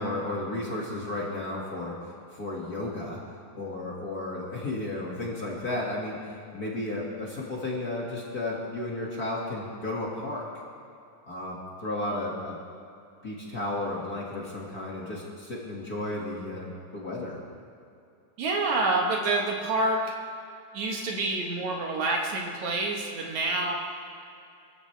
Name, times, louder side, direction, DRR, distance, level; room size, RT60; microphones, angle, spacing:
voice 1, 0.0-2.0 2.3-3.2 3.5-6.2 6.5-10.5 11.3-12.6 13.2-17.4, left 2 dB, 35° left, -4 dB, 2.1 m, -33 dB
voice 2, 18.4-20.0 20.7-23.7, right 2 dB, 65° right, 0 dB, 2.7 m, -27 dB
24.5 x 14.5 x 3.4 m, 2.6 s
omnidirectional pair, 3.6 m